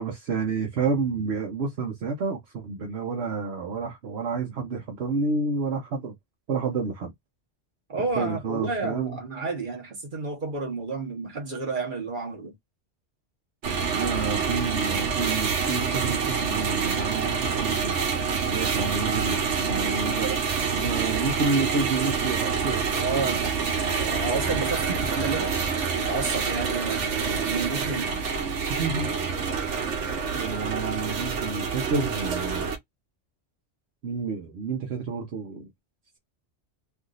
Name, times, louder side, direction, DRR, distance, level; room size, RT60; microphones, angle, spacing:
voice 1, 0.0-6.1 6.5-7.1 8.2-9.2 13.9-18.0 18.4-22.8 25.2-25.3 28.7-29.1 30.3-32.7 34.0-35.7, right 4 dB, 65° right, 1.1 m, -29 dB
voice 2, 7.9-12.5 23.0-25.5 25.9-28.2, right 4 dB, 45° right, 1.4 m, -31 dB
sound 1, 13.6-32.8, right 5 dB, 85° right, 1.1 m, -27 dB
3.5 x 2.6 x 2.4 m
omnidirectional pair, 1.2 m